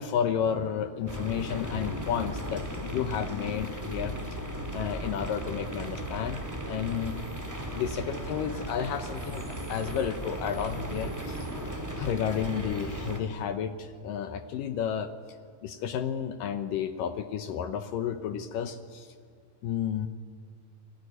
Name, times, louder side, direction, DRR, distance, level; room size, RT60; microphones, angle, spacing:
voice 1, 0.0-4.4 4.7-7.1 7.7-11.5 12.0-15.1 15.6-19.1 19.6-20.1, left 8 dB, 75° left, 9 dB, 2.2 m, -32 dB
sound 1, 1.1-13.2, right 1 dB, 10° right, 1.1 m, -36 dB
29.5 x 20.0 x 9.5 m, 2.1 s
omnidirectional pair, 4.7 m